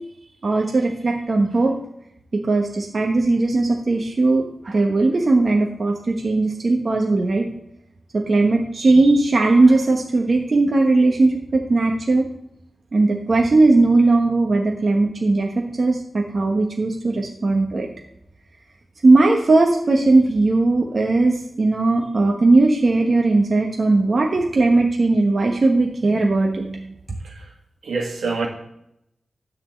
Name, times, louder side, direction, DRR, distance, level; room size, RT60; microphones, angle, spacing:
voice 1, 0.4-1.7 2.4-7.5 8.1-12.3 12.9-17.9 19.0-26.9, right 2 dB, 50° right, 0 dB, 1.1 m, -18 dB
voice 2, 27.8-28.5, right 4 dB, 80° right, 0 dB, 2.0 m, -26 dB
9.9 x 4.2 x 7.3 m, 0.82 s
wide cardioid pair, 80°, 0 cm